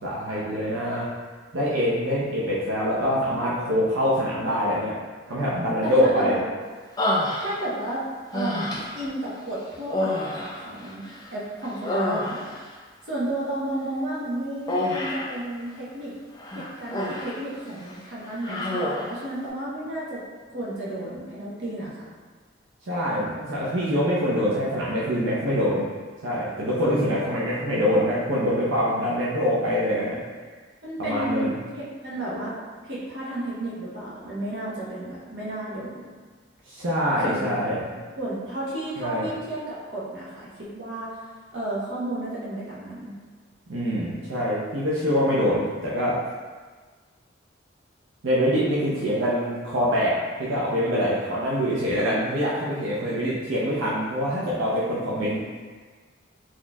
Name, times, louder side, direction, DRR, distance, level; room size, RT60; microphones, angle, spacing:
voice 1, 0.0-1.1 1.5-5.0 5.3-6.4 22.9-25.9 26.2-30.2 31.0-31.5 36.7-37.8 39.0-39.3 43.7-46.2 48.2-55.4, equal, 90° right, -7 dB, 0.6 m, -24 dB
voice 2, 5.8-6.4 7.4-8.0 8.3-11.0 11.3-12.5 13.1-16.1 16.5-20.2 20.5-22.1 30.8-32.5 32.9-36.1 37.2-37.6 38.2-41.2 41.5-43.1, right 1 dB, 60° right, -8 dB, 1.0 m, -32 dB
Human voice, 7.0-7.9 8.3-9.1 9.9-11.3 11.6-12.7 14.7-15.4 16.4-17.4 17.8-18.0 18.4-19.2, left 1 dB, 20° left, 0.4 m, -28 dB
4.2 x 2.9 x 2.3 m, 1.4 s
head